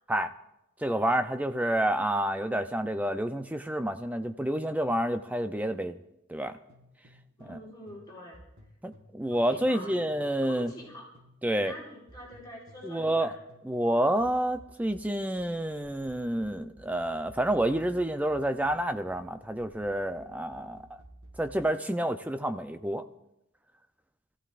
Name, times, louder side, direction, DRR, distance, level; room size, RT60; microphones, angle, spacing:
voice 1, 0.8-6.0 6.3-6.5 7.4-7.6 8.8-10.7 11.4-11.7 12.8-13.3 13.6-21.0 21.4-23.0, right 1 dB, 10° right, 8 dB, 0.5 m, -29 dB
sound 1, 6.7-11.4 11.6-21.7, equal, 70° right, 4.8 m, -55 dB
voice 2, 7.4-8.4 9.3-10.1 10.4-11.1 11.5-13.3, left 1 dB, 20° left, -5 dB, 5.1 m, -45 dB
25.0 x 15.0 x 2.5 m, 0.85 s
head